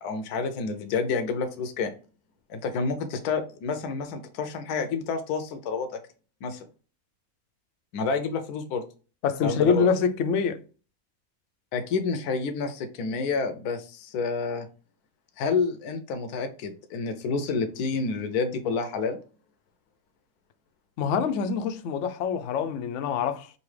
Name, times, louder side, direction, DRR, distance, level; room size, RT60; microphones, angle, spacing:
voice 1, 0.0-1.9 2.5-6.0 6.4-6.6 7.9-8.8 9.4-9.9 11.7-14.7 15.4-19.2, left 4 dB, 80° left, 1.2 m, -29 dB
voice 2, 9.2-10.6 21.0-23.5, left 6 dB, 65° left, 0.8 m, -25 dB
5.3 x 2.7 x 3.2 m
omnidirectional pair, 1.6 m